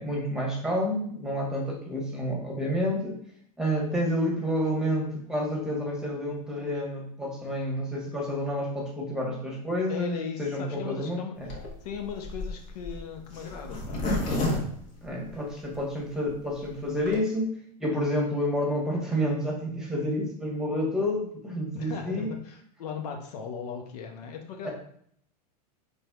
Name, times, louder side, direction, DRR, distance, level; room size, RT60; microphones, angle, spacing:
voice 1, 0.0-3.2 3.6-11.5 15.0-17.5 17.8-22.3 24.6-24.7, equal, 5° right, -2 dB, 1.2 m, -29 dB
voice 2, 9.9-11.3 11.8-14.2 21.7-24.7, left 6 dB, 75° left, 4 dB, 0.7 m, -37 dB
Zipper (clothing), 11.4-15.8 16.2-16.3 16.5-16.6 16.8-17.2, left 1 dB, 40° left, 1.2 m, -31 dB
4.0 x 3.3 x 2.3 m, 0.64 s
hypercardioid pair, 105°, 20 cm